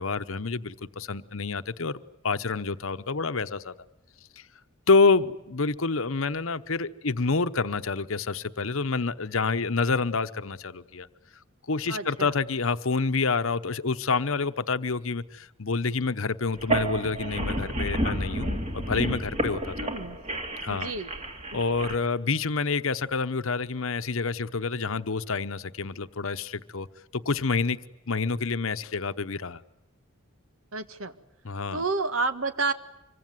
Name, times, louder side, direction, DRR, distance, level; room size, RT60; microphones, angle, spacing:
voice 1, 0.0-3.7 4.4-4.5 4.9-11.1 11.7-19.7 20.6-20.9 21.5-26.9 27.1-27.8 28.1-29.6 31.4-31.8, left 4 dB, 70° left, 11 dB, 1.0 m, -27 dB
voice 2, 11.9-12.3 19.7-20.2 20.7-21.1 21.5-21.6 30.7-31.1 31.7-32.7, right 3 dB, 75° right, 10 dB, 1.7 m, -30 dB
sound 1, 16.5-21.9, right 1 dB, 30° right, 2.5 m, -30 dB
26.0 x 24.0 x 9.5 m, 0.86 s
head